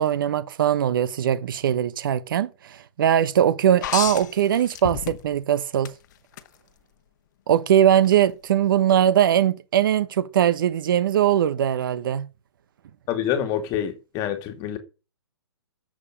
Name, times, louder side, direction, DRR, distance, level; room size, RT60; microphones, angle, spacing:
voice 1, 0.0-5.9 7.5-12.3, right 10 dB, 50° right, 1.2 m, -21 dB
sound 1, 3.8-5.4 5.8-6.5 8.0-8.2, left 11 dB, 45° left, 1.3 m, -31 dB
voice 2, 13.1-14.8, left 9 dB, 25° left, 2.6 m, -26 dB
11.0 x 7.9 x 8.9 m
hypercardioid pair, 135°, 14 cm